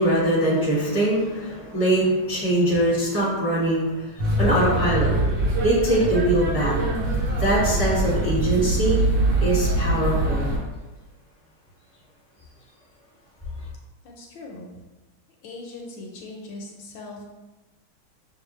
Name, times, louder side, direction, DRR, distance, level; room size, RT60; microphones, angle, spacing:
voice 1, 0.0-4.1 4.4-5.1 5.6-6.8 7.4-9.0 9.4-10.5, right 1 dB, 10° right, -7 dB, 0.7 m, -22 dB
sound 1, 4.2-10.6, right 1 dB, 55° right, 2.0 m, -23 dB
voice 2, 14.0-14.7 15.4-17.2, left 2 dB, 75° left, 0 dB, 1.2 m, -39 dB
6.2 x 2.2 x 3.0 m, 1.1 s
omnidirectional pair, 2.3 m